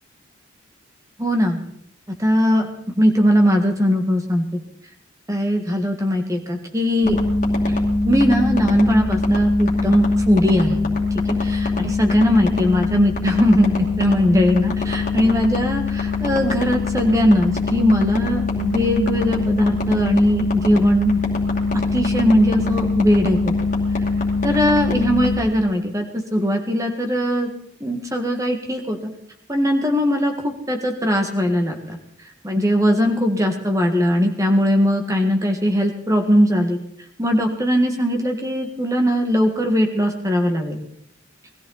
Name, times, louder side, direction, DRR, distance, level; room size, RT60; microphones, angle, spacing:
voice 1, 1.2-1.6 2.2-2.7 3.0-4.4 5.3-7.2 8.0-10.8 11.4-21.2 21.9-23.5 24.4-27.5 27.8-29.0 29.5-32.0 32.4-36.8 37.2-40.8, equal, 15° right, 4 dB, 1.9 m, -19 dB
sound 1, 7.0-25.4, left 3 dB, 40° left, 2.6 m, -22 dB
20.5 x 14.0 x 4.1 m, 0.70 s
head